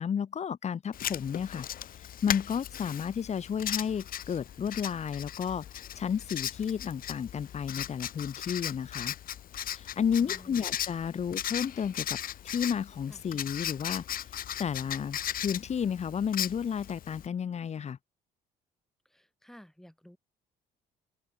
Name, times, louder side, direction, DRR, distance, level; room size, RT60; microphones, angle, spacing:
voice 1, 0.0-1.7 2.2-9.1 9.7-12.2 12.4-14.2 14.6-18.0, left 7 dB, 40° left, 3.6 m, -32 dB
Writing, 0.9-17.3, left 11 dB, 60° left, 4.2 m, -37 dB
voice 2, 10.2-10.6 13.1-13.2 19.1-20.2, equal, ahead, 7.7 m, -53 dB
open air
cardioid pair, 110°, 17 cm